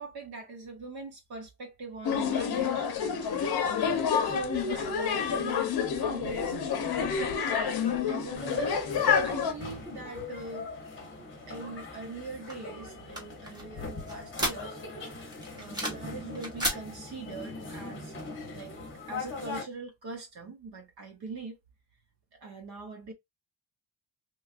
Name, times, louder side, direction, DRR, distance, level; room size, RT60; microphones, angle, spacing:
voice 1, 0.0-3.8 4.2-6.6 8.1-8.7 9.2-10.7 11.5-14.8 15.5-18.1 18.5-18.7 19.1-21.6 22.4-23.1, right 3 dB, 55° right, 0.9 m, -42 dB
sound 1, 2.0-9.5, left 7 dB, 55° left, 0.7 m, -28 dB
sound 2, 8.4-19.6, left 3 dB, 25° left, 0.9 m, -40 dB
sound 3, 12.5-15.0 15.3-16.1 16.4-16.8, equal, 10° right, 0.9 m, -33 dB
3.2 x 2.4 x 2.4 m
wide cardioid pair, 175°, 46 cm